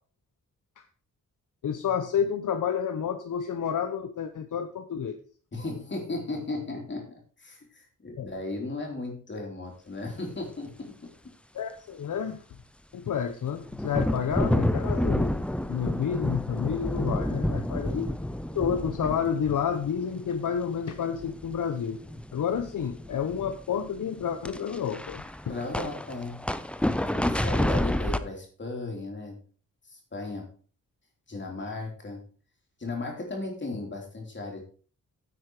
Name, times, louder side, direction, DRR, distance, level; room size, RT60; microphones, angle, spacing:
voice 1, 1.6-5.2 8.2-8.3 11.5-12.4 12.9-15.4 15.7-18.1 18.5-22.0 22.3-25.6, left 7 dB, 70° left, 8 dB, 0.9 m, -30 dB
voice 2, 5.5-11.0 17.4-17.6 25.5-26.4 27.1-29.4 29.9-30.5 31.3-32.2 32.8-34.6, left 2 dB, 35° left, 1 dB, 3.4 m, -36 dB
sound 1, 13.7-20.6 21.0-21.6 21.9-28.2, left 1 dB, 5° left, 0.5 m, -29 dB
9.9 x 8.0 x 4.8 m, 0.40 s
wide cardioid pair, 155°, 33 cm